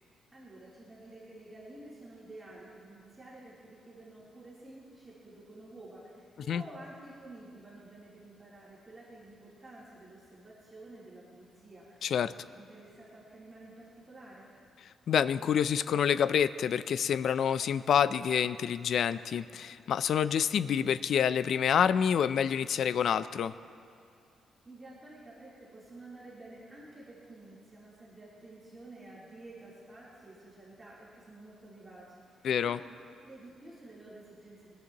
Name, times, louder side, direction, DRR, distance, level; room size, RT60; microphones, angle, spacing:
voice 1, 0.3-14.5 24.6-32.9 33.2-34.8, right 2 dB, 15° right, -9 dB, 3.4 m, -51 dB
voice 2, 12.0-12.3 15.1-23.5 32.4-32.8, left 8 dB, 60° left, 15 dB, 0.4 m, -27 dB
22.0 x 20.0 x 3.0 m, 2.5 s
cardioid pair, 145°, 0 cm